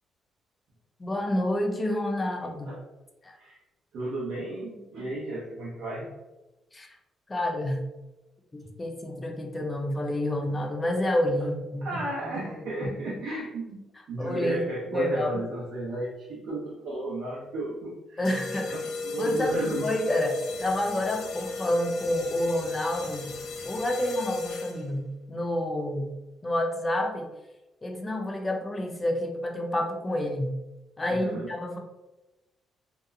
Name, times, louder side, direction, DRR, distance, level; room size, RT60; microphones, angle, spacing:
voice 1, 1.0-2.7 3.2-3.4 6.7-7.0 7.3-7.8 8.5-12.0 12.3-12.6 12.8-12.9 14.2-14.6 14.9-15.3 18.2-18.8 19.2-23.3 23.6-26.1 26.4-27.3 27.8-30.6 31.0-31.8, left 1 dB, 20° left, 3 dB, 0.5 m, -29 dB
voice 2, 3.9-6.1 7.4-7.5 11.8-13.8 14.1-19.8 31.1-31.5, right 2 dB, 80° right, -6 dB, 0.7 m, -34 dB
sound 1, 18.2-25.0, left 3 dB, 80° left, 0.3 m, -36 dB
2.8 x 2.1 x 2.4 m, 1.0 s
cardioid pair, 90°, 0 cm